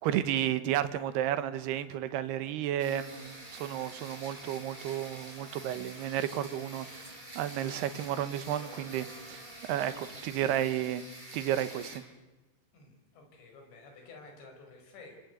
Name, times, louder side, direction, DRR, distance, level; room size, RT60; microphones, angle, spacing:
voice 1, 0.0-7.1 7.3-11.0 11.3-12.0, right 11 dB, 70° right, 12 dB, 2.9 m, -32 dB
sound 1, 2.8-12.0, right 1 dB, 10° right, 5.2 m, -48 dB
sound 2, 3.1-10.3, right 1 dB, 45° right, 0.4 m, -53 dB
voice 2, 12.7-15.2, left 3 dB, 65° left, 3 dB, 7.2 m, -52 dB
27.0 x 25.0 x 8.2 m, 1.2 s
omnidirectional pair, 5.5 m